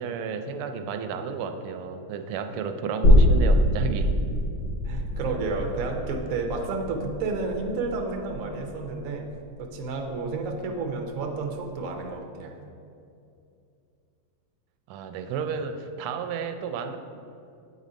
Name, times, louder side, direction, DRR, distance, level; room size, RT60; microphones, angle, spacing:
voice 1, 0.0-4.1 14.9-17.0, right 6 dB, 90° right, 7 dB, 1.5 m, -32 dB
sound 1, 3.0-10.3 10.7-10.8, equal, 65° left, 1.3 m, -24 dB
voice 2, 4.8-9.3 9.6-12.6, right 3 dB, 60° right, 2 dB, 0.9 m, -31 dB
8.7 x 4.1 x 5.1 m, 2.5 s
omnidirectional pair, 2.3 m